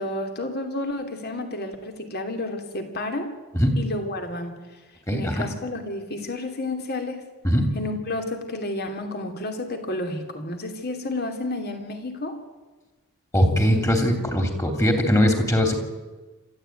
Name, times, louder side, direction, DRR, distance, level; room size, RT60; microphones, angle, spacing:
voice 1, 0.0-3.3 3.7-4.6 5.1-7.2 7.7-12.4, left 2 dB, 45° left, 5 dB, 3.0 m, -31 dB
voice 2, 5.1-5.4 7.4-7.7 13.3-15.8, equal, 15° left, 5 dB, 3.1 m, -20 dB
27.0 x 13.5 x 9.2 m, 1.2 s
head